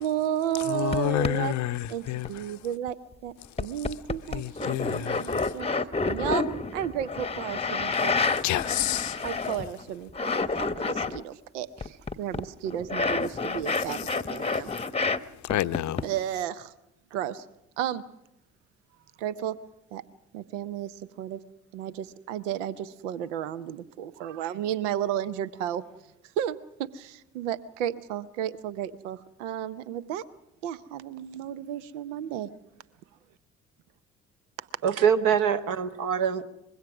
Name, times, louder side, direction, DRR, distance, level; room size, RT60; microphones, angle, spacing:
voice 1, 0.0-1.5 1.9-2.0 2.3-3.0 3.2-5.7 6.0-6.5 6.7-8.2 9.2-14.0 14.3-14.7 16.0-16.7 17.1-17.4 17.8-18.0 19.2-19.5 19.9-20.0 20.3-21.4 21.7-25.8 26.4-30.2 30.6-32.5 34.6-34.7, right 10 dB, 75° right, 0.7 m, -33 dB
voice 2, 0.5-2.7 3.4-4.0 4.3-5.6 7.9-9.6 13.7-14.2 14.4-16.1, left 15 dB, 50° left, 0.7 m, -32 dB
sound 1, 0.9-1.0 1.2-1.3 1.8-2.3 2.9-3.0 3.6-9.8 10.1-11.2 11.8-15.2 15.5-16.0, left 4 dB, 15° left, 0.9 m, -29 dB
voice 3, 34.8-36.4, right 7 dB, 60° right, 1.3 m, -24 dB
24.0 x 21.0 x 6.1 m
figure-of-eight pair, 45°, 36 cm